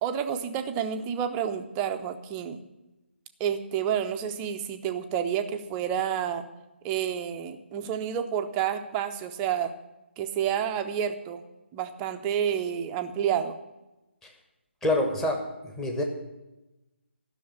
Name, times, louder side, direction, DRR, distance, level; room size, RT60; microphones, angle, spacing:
voice 1, 0.0-2.6 3.4-6.5 6.8-9.7 10.2-11.4 11.7-13.5, right 9 dB, 15° right, 8 dB, 0.6 m, -29 dB
voice 2, 14.8-16.0, left 1 dB, 5° left, 2 dB, 1.3 m, -27 dB
12.5 x 6.4 x 9.5 m, 1.0 s
figure-of-eight pair, 145°, 7 cm